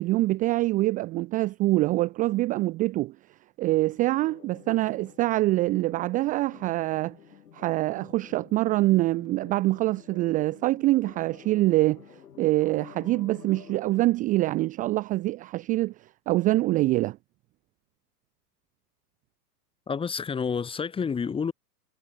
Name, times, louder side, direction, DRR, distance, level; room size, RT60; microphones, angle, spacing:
voice 1, 0.0-3.2 3.6-7.2 7.5-17.2, right 18 dB, 20° right, 0.4 m, -25 dB
sound 1, 3.7-14.1, left 9 dB, 75° left, 2.4 m, -50 dB
voice 2, 19.9-21.5, left 6 dB, 10° left, 0.9 m, -29 dB
figure-of-eight pair, 100°, 48 cm